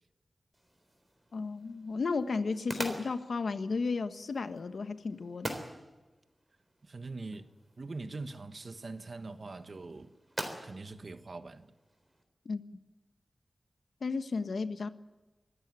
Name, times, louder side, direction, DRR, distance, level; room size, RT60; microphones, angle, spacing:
sound 1, 0.5-12.2, right 1 dB, 15° right, 3.8 m, -46 dB
voice 1, 1.3-5.5 12.4-12.6 14.0-14.9, left 4 dB, 75° left, 1.2 m, -33 dB
voice 2, 6.8-10.1 10.6-11.7, right 3 dB, 50° right, 1.3 m, -43 dB
25.0 x 14.0 x 9.7 m
wide cardioid pair, 105°, 0 cm